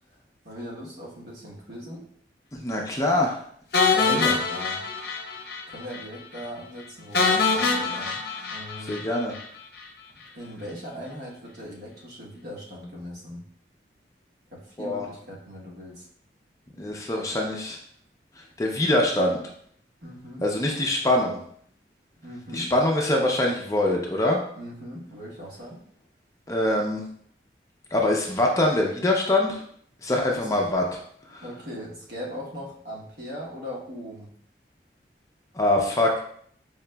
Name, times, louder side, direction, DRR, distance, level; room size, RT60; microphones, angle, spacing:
voice 1, 0.4-2.0 3.9-4.8 5.7-8.2 8.5-9.0 10.3-13.5 14.5-16.1 20.0-20.4 22.2-22.7 24.6-25.8 30.3-30.5 31.4-34.3, equal, 65° right, -4 dB, 1.1 m, -39 dB
voice 2, 2.5-3.4 4.1-4.4 8.8-9.3 14.8-15.1 16.8-17.8 18.4-19.4 20.4-21.4 22.5-24.4 26.5-27.0 27.9-29.6 30.0-31.0 31.3-31.4 35.5-36.2, left 1 dB, 20° left, 0 dB, 0.4 m, -24 dB
sound 1, 3.7-5.6 5.9-6.0 6.4-6.5 7.1-9.4, left 4 dB, 60° left, 0.6 m, -24 dB
4.8 x 2.8 x 2.2 m, 0.62 s
head